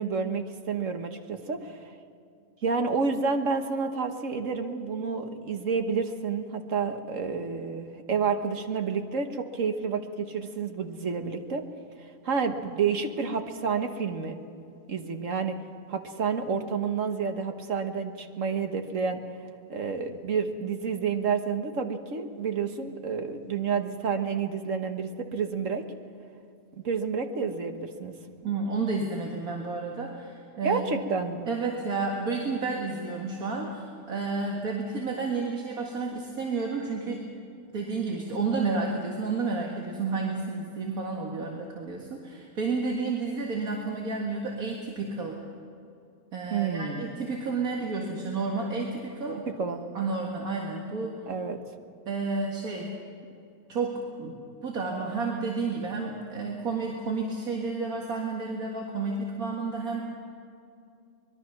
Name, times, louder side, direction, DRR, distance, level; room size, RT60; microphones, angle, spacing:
voice 1, 0.0-1.8 2.6-11.6 12.2-14.4 14.9-15.6 15.9-19.2 19.7-25.8 26.8-28.1 30.6-31.5 46.5-47.1 49.6-49.8 51.3-51.6, right 5 dB, 65° right, 6 dB, 1.7 m, -29 dB
voice 2, 28.4-30.8 31.5-37.2 37.7-45.4 46.3-49.4 49.9-51.2 52.1-52.9 53.7-60.0, right 4 dB, 80° right, 0 dB, 2.3 m, -31 dB
24.5 x 21.5 x 5.9 m, 2.5 s
omnidirectional pair, 1.5 m